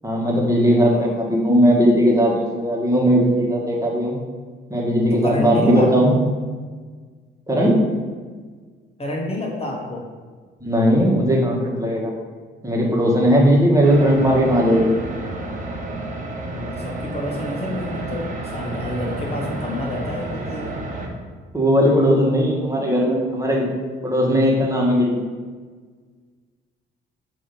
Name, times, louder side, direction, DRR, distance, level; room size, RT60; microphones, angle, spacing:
voice 1, 0.0-4.2 4.7-6.1 7.5-7.7 10.6-12.1 12.6-14.9 21.5-23.7 24.0-25.3, equal, 15° right, -3 dB, 1.4 m, -18 dB
voice 2, 0.8-1.2 5.1-6.2 9.0-10.1 13.6-13.7 16.5-20.8, left 1 dB, 30° left, 0 dB, 0.9 m, -29 dB
sound 1, 13.8-21.1, right 2 dB, 40° right, 1.2 m, -30 dB
7.1 x 2.8 x 5.2 m, 1.5 s
cardioid pair, 90°, 20 cm